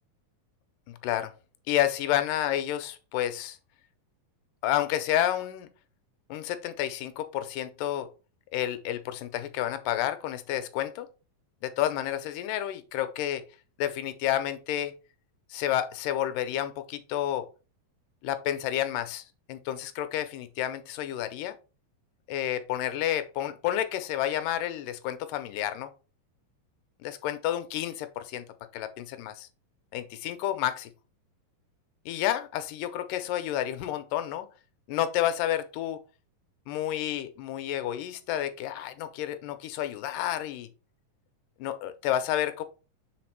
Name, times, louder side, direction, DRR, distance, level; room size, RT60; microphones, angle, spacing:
voice 1, 0.9-1.3 1.7-3.6 4.6-5.7 6.3-8.1 8.5-11.1 11.6-13.4 13.8-14.9 15.5-17.5 18.2-21.6 22.3-25.9 27.0-28.4 28.7-29.5 29.9-30.9 32.1-34.5 34.9-36.0 36.7-40.7 41.6-42.6, left 12 dB, 85° left, 2.2 m, -30 dB
5.9 x 4.3 x 4.5 m
omnidirectional pair, 4.0 m